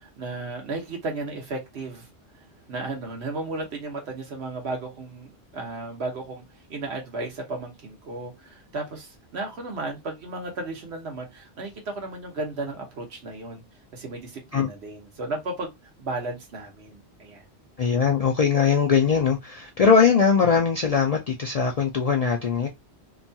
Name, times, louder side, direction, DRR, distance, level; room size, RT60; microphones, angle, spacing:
voice 1, 0.0-2.1 2.7-6.4 6.7-13.6 13.9-15.7 16.0-17.5, right 2 dB, 75° right, 1.2 m, -34 dB
voice 2, 17.8-22.7, left 6 dB, 60° left, 0.4 m, -21 dB
2.9 x 2.3 x 2.6 m
omnidirectional pair, 1.1 m